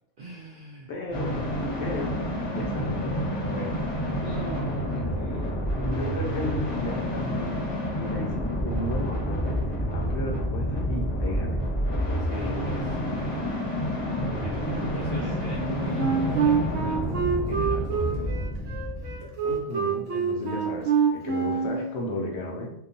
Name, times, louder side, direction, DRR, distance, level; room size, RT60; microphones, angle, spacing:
voice 1, 0.2-0.9 4.2-5.7 12.2-13.7 14.0-18.4, right 2 dB, 65° right, -4 dB, 0.5 m, -39 dB
voice 2, 0.9-1.3 1.8-2.2 2.5-4.0 5.8-7.7 8.0-11.6 14.7-15.3 19.4-22.7, left 1 dB, 70° left, 1 dB, 0.8 m, -34 dB
sound 1, 1.1-19.6, equal, 25° left, 0.7 m, -29 dB
Wind instrument woodwind instrument, 15.9-21.8, right 6 dB, 80° right, 1.0 m, -26 dB
2.8 x 2.0 x 2.5 m, 0.71 s
omnidirectional pair, 1.3 m